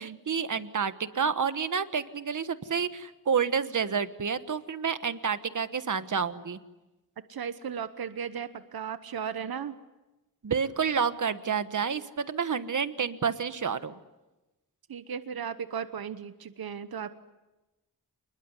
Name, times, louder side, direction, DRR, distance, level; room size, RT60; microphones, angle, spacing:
voice 1, 0.0-6.6 10.4-13.9, right 6 dB, 55° right, 11 dB, 1.3 m, -29 dB
voice 2, 7.3-9.8 14.9-17.1, right 7 dB, 70° right, 11 dB, 1.1 m, -36 dB
28.5 x 21.0 x 9.7 m, 1.1 s
wide cardioid pair, 155°, 38 cm